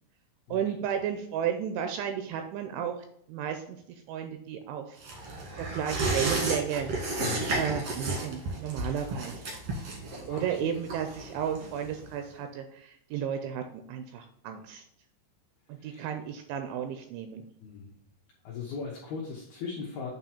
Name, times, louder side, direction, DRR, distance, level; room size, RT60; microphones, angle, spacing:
voice 1, 0.5-2.9 3.3-3.8 4.1-5.0 5.7-6.9 7.6-9.6 10.3-13.6 13.9-14.8 15.8-17.4, right 9 dB, 85° right, 6 dB, 2.7 m, -33 dB
sound 1, 5.0-12.1 12.4-12.5, right 2 dB, 65° right, 1.5 m, -33 dB
voice 2, 7.2-7.6 10.2-10.7 15.8-16.2 17.6-18.0 18.4-20.1, left 5 dB, 75° left, -3 dB, 2.3 m, -38 dB
8.6 x 3.1 x 5.8 m, 0.71 s
omnidirectional pair, 5.8 m